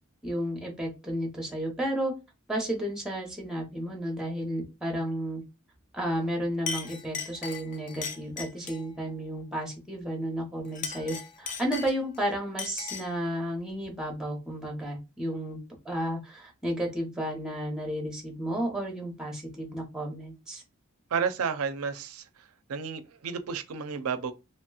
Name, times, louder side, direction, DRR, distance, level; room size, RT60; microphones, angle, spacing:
voice 1, 0.2-2.1 2.5-5.4 5.9-15.6 15.8-20.6, equal, 5° right, 0.7 m, -32 dB
Chink clink, 6.2-6.3 6.7-8.9 10.6-12.2 12.6-13.2, left 5 dB, 35° left, 0.4 m, -37 dB
voice 2, 21.1-22.2 22.7-24.3, right 6 dB, 75° right, 0.5 m, -31 dB
3.0 x 2.9 x 2.3 m
head